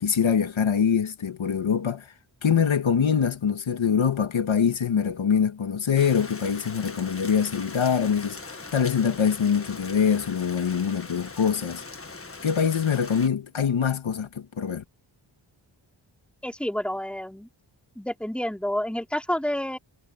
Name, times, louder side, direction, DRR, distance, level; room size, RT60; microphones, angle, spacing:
voice 1, 0.0-2.1 2.4-11.8 12.4-14.8, left 7 dB, 80° left, 1.9 m, -24 dB
Rain, 6.0-13.3, left 3 dB, 30° left, 1.6 m, -41 dB
voice 2, 16.4-17.5 18.0-19.8, left 1 dB, ahead, 2.7 m, -29 dB
wide cardioid pair, 85°, 46 cm